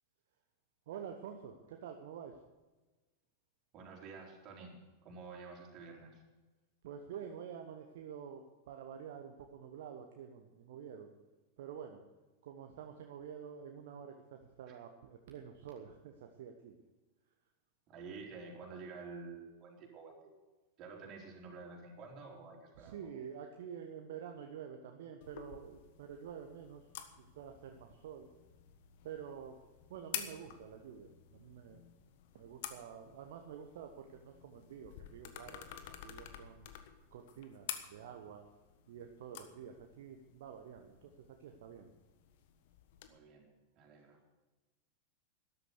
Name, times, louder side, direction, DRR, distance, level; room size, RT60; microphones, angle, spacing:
voice 1, 0.9-2.4 6.8-11.1 11.6-12.0 12.4-16.8 22.8-26.9 27.1-28.3 29.0-29.6 29.9-31.8 32.3-36.7 37.1-38.4 38.9-41.9, right 8 dB, 55° right, 4 dB, 1.2 m, -48 dB
voice 2, 3.7-6.2 17.9-20.3 20.8-23.0 43.0-43.5 43.7-44.2, right 4 dB, 35° right, -1 dB, 4.2 m, -50 dB
sound 1, 25.2-43.1, left 10 dB, 50° left, 1.3 m, -50 dB
13.5 x 11.0 x 6.7 m, 1.2 s
figure-of-eight pair, 90°, 0 cm